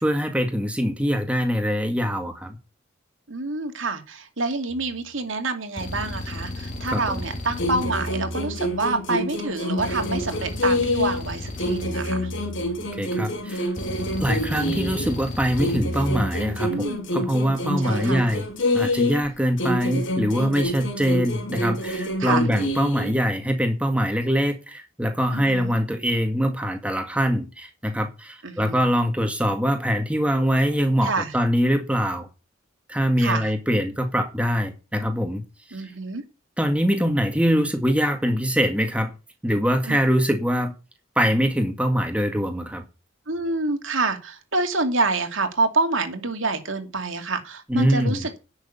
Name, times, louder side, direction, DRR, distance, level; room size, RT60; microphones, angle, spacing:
voice 1, 0.0-2.6 6.9-7.2 12.9-13.7 14.2-16.9 17.1-18.5 18.7-32.3 32.9-35.4 36.6-39.1 39.4-40.7 41.2-42.8 47.7-48.3, equal, 5° right, 1.8 m, -23 dB
voice 2, 3.3-12.3 16.7-17.1 17.8-18.2 19.5-20.1 22.2-22.5 25.3-25.8 28.4-28.8 31.0-31.3 33.2-33.5 35.7-36.2 39.8-40.0 43.3-48.4, right 3 dB, 70° right, 2.5 m, -27 dB
sound 1, 4.7-5.0 5.8-9.0 9.8-13.0 13.8-16.7, left 1 dB, 40° left, 2.8 m, -34 dB
sound 2, 7.6-11.3 11.6-15.2 15.6-19.3 19.6-23.2, left 1 dB, 70° left, 3.5 m, -27 dB
11.0 x 6.5 x 8.6 m
head